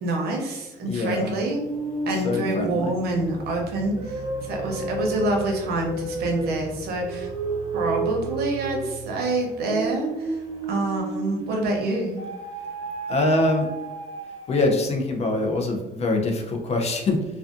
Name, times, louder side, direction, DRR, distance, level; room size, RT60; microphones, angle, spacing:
voice 1, 0.0-1.6 2.1-4.2 4.5-7.3 7.7-10.3 10.7-12.2, right 2 dB, 70° right, 1 dB, 0.7 m, -26 dB
voice 2, 0.9-1.3 2.1-2.9 13.1-13.7 14.5-17.2, left 2 dB, 40° left, 2 dB, 0.5 m, -24 dB
sound 1, 1.4-11.6 12.2-14.9, right 3 dB, 30° right, 1.0 m, -32 dB
2.4 x 2.2 x 2.5 m, 1.0 s
cardioid pair, 110°, 17 cm